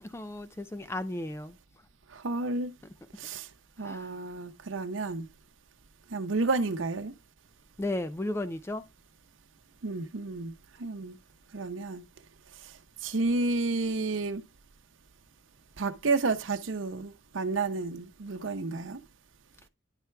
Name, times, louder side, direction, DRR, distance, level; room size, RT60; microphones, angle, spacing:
voice 1, 0.0-1.6 2.8-2.9 3.8-4.1 7.8-8.9, left 1 dB, 15° left, 0.4 m, -34 dB
voice 2, 2.1-2.7 3.2-3.5 3.8-5.3 6.1-7.1 9.8-10.5 10.8-11.2 11.5-12.0 12.6-12.7 13.0-14.4 15.8-19.0, right 3 dB, 90° right, 0.7 m, -31 dB
9.9 x 4.5 x 3.3 m
head